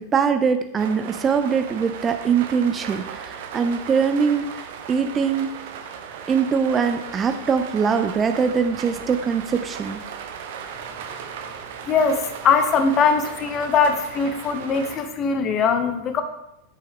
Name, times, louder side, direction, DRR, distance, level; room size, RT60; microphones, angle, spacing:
voice 1, 0.0-4.6 4.9-5.5 6.3-10.0, right 6 dB, 20° right, 9 dB, 0.5 m, -22 dB
sound 1, 0.8-15.0, right 7 dB, 55° right, 1.0 m, -37 dB
voice 2, 11.9-16.2, left 5 dB, 30° left, 8 dB, 1.0 m, -21 dB
8.5 x 7.4 x 3.6 m, 0.87 s
figure-of-eight pair, 90°, 0 cm